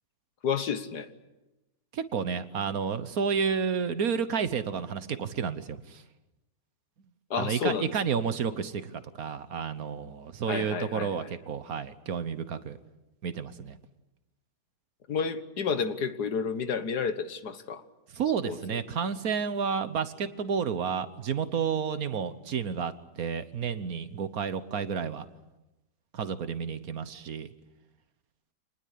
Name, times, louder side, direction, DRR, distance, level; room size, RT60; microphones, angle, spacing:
voice 1, 0.4-1.1 7.3-7.9 10.5-11.3 15.1-17.8 18.4-18.6, left 6 dB, 70° left, 11 dB, 1.8 m, -30 dB
voice 2, 1.9-6.0 7.4-12.8 13.2-13.8 18.1-25.3 26.1-27.5, right 6 dB, 60° right, 13 dB, 1.4 m, -31 dB
26.5 x 20.0 x 8.5 m, 1.0 s
omnidirectional pair, 1.8 m